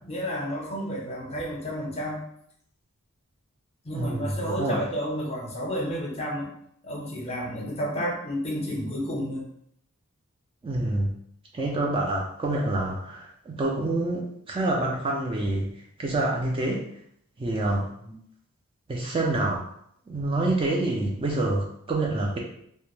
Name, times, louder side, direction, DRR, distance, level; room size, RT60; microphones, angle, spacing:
voice 1, 0.0-2.2 3.8-6.5 6.8-9.5 18.0-18.2, equal, 30° left, -3 dB, 0.6 m, -31 dB
voice 2, 3.9-4.8 10.6-11.1 11.5-15.7 16.0-16.8 17.4-17.9 18.9-19.6 20.1-22.4, right 2 dB, 25° right, -1 dB, 0.3 m, -27 dB
2.2 x 2.0 x 3.0 m, 0.69 s
head